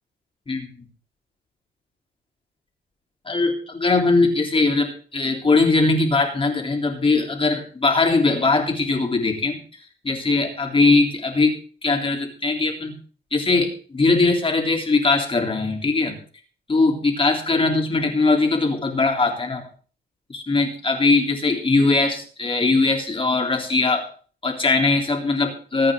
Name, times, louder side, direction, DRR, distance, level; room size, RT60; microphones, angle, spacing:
voice 1, 3.2-9.6 10.0-11.6 11.8-13.0 13.3-16.1 16.7-19.7 20.3-24.1 24.4-25.9, left 3 dB, 25° left, 1 dB, 3.5 m, -20 dB
22.0 x 8.9 x 3.8 m, 0.41 s
cardioid pair, 90°, 20 cm